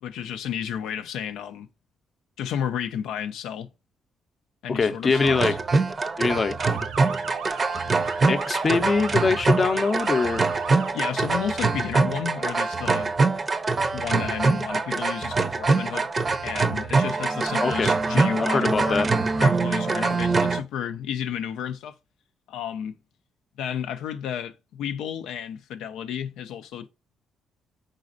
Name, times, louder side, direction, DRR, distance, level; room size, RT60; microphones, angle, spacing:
voice 1, 0.0-1.7 2.4-3.7 4.6-5.6 10.9-13.1 13.9-16.1 16.4-19.1 19.4-22.0 22.5-23.0 23.6-26.9, left 9 dB, 90° left, 0.3 m, -32 dB
voice 2, 4.7-5.5 6.2-6.8 8.2-10.5 17.6-17.9 18.4-19.1, left 4 dB, 35° left, 0.5 m, -23 dB
sound 1, 5.1-20.6, right 3 dB, 35° right, 0.5 m, -24 dB
Motor vehicle (road) / Siren, 6.6-10.9, right 6 dB, 90° right, 0.6 m, -37 dB
5.0 x 4.0 x 2.5 m
cardioid pair, 90°, 0 cm